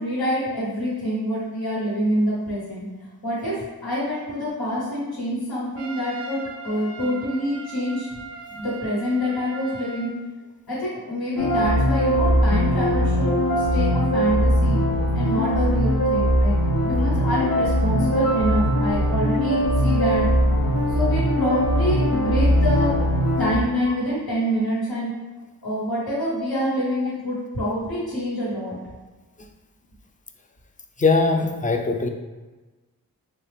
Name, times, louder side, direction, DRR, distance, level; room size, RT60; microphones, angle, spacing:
voice 1, 0.0-2.8 3.2-8.1 8.5-10.1 10.7-14.8 15.1-16.5 16.8-20.2 20.9-22.9 23.4-25.1 25.6-28.8, equal, 90° left, -8 dB, 1.4 m, -26 dB
Trumpet, 5.8-10.2, right 4 dB, 40° right, 0.4 m, -39 dB
sound 1, 11.4-23.6, equal, 70° left, 0.7 m, -20 dB
voice 2, 31.0-32.1, left 3 dB, 25° left, 4 dB, 0.4 m, -20 dB
4.0 x 2.4 x 3.3 m, 1.2 s
wide cardioid pair, 85°, 36 cm